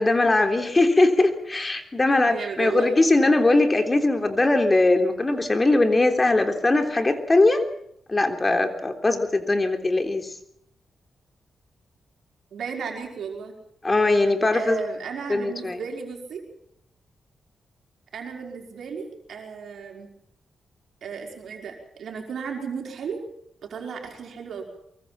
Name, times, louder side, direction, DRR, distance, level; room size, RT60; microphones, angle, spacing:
voice 1, 0.0-7.6 8.1-10.3 13.8-14.8 15.3-15.8, left 2 dB, 30° left, 6 dB, 3.5 m, -20 dB
voice 2, 2.3-3.0 12.5-13.5 14.5-16.4 18.1-20.1 21.0-23.2 23.6-24.6, right 6 dB, 70° right, 2 dB, 5.1 m, -34 dB
24.0 x 23.0 x 5.9 m, 0.72 s
supercardioid pair, 40°, 0 cm